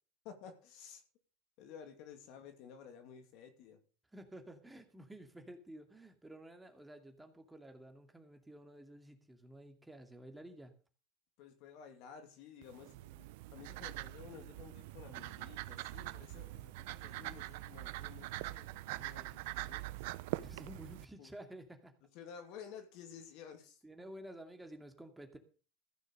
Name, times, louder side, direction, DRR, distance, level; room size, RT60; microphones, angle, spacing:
voice 1, 0.2-1.0 1.6-3.8 11.4-20.1 21.2-21.3 22.1-23.8, left 7 dB, 65° left, 6 dB, 2.7 m, -53 dB
voice 2, 4.1-10.8 20.4-21.9 23.8-25.4, right 1 dB, 10° right, 5 dB, 2.5 m, -52 dB
sound 1, 12.6-21.1, right 18 dB, 75° right, 0.6 m, -44 dB
15.0 x 6.4 x 6.6 m, 0.38 s
hypercardioid pair, 95°, 0 cm